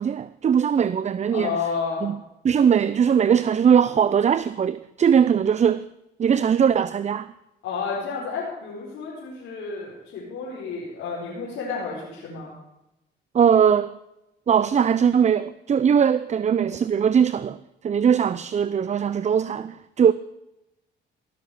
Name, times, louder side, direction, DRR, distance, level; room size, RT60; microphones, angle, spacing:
voice 1, 0.0-1.6 2.0-2.2 2.4-5.9 6.2-7.3 13.3-14.0 14.5-17.6 17.8-20.1, right 7 dB, 35° right, 0.5 m, -20 dB
voice 2, 1.3-2.1 7.6-12.5, left 5 dB, 85° left, 4.7 m, -31 dB
17.0 x 7.3 x 7.8 m
cardioid pair, 90°, 20 cm